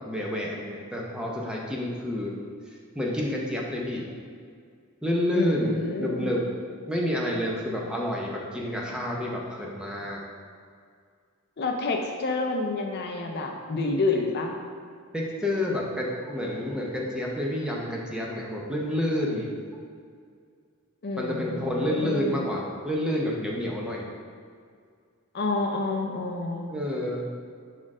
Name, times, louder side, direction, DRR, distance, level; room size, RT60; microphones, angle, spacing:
voice 1, 0.0-2.3 2.9-4.1 5.0-6.4 6.9-10.2 15.1-19.5 21.2-24.0 26.7-27.3, left 1 dB, 5° right, -3 dB, 0.6 m, -29 dB
voice 2, 5.3-6.3 11.6-14.6 21.0-22.4 25.3-26.7, left 3 dB, 45° left, 2 dB, 0.5 m, -29 dB
6.0 x 4.3 x 3.6 m, 2.1 s
head